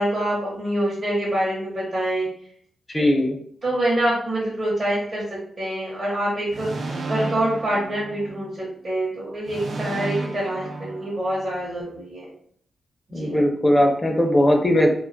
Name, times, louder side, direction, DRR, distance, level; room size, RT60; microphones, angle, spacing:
voice 1, 0.0-2.3 3.6-12.2 13.1-13.4, right 1 dB, 45° right, -7 dB, 0.8 m, -26 dB
voice 2, 2.9-3.4 13.1-14.9, equal, 25° left, 2 dB, 0.4 m, -19 dB
sound 1, 6.5-8.7 9.5-11.7, right 2 dB, 65° right, 0.4 m, -33 dB
2.3 x 2.2 x 2.5 m, 0.63 s
cardioid pair, 75°, 0 cm